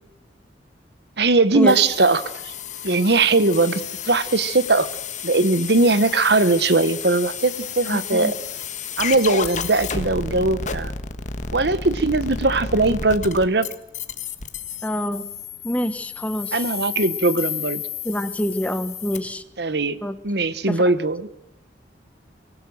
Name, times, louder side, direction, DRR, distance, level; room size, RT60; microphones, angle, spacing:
voice 1, 1.2-2.5 2.8-4.9 5.2-8.3 9.0-10.9 11.5-13.7 16.5-17.8 19.6-20.0 20.2-21.3, right 3 dB, 65° right, 15 dB, 1.2 m, -20 dB
sound 1, 1.7-19.2, left 6 dB, 45° left, 1.6 m, -32 dB
voice 2, 7.9-8.3 14.8-15.2 15.6-16.5 18.0-19.4 20.0-20.1 20.7-20.8, equal, 10° left, 11 dB, 1.4 m, -26 dB
24.0 x 18.0 x 7.8 m, 0.85 s
head